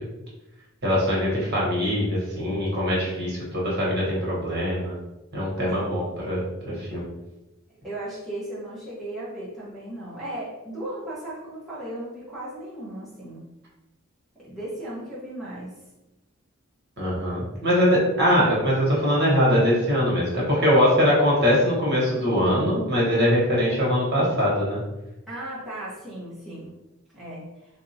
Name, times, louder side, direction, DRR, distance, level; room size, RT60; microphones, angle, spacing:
voice 1, 0.8-5.0 5.3-7.1 17.0-24.8, equal, 55° right, -5 dB, 1.2 m, -22 dB
voice 2, 7.7-13.4 14.3-15.8 25.3-26.8 27.1-27.5, right 1 dB, ahead, -8 dB, 1.0 m, -36 dB
3.3 x 2.7 x 2.8 m, 0.96 s
head